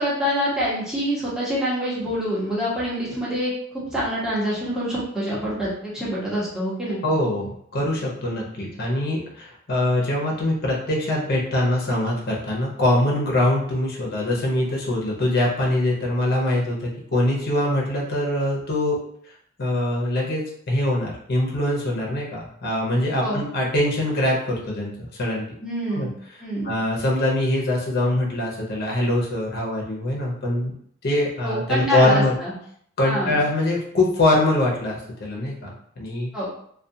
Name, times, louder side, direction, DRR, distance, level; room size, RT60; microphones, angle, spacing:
voice 1, 0.0-7.0 8.2-8.4 23.2-23.4 25.6-26.1 26.4-26.7 31.4-32.5 33.0-33.4 36.3-36.5, equal, 5° right, -9 dB, 0.9 m, -26 dB
voice 2, 7.0-19.0 19.6-24.9 25.2-25.5 25.9-26.1 26.6-30.7 31.0-32.3 33.0-36.5, left 1 dB, 50° left, -3 dB, 0.7 m, -23 dB
2.4 x 2.3 x 2.7 m, 0.67 s
head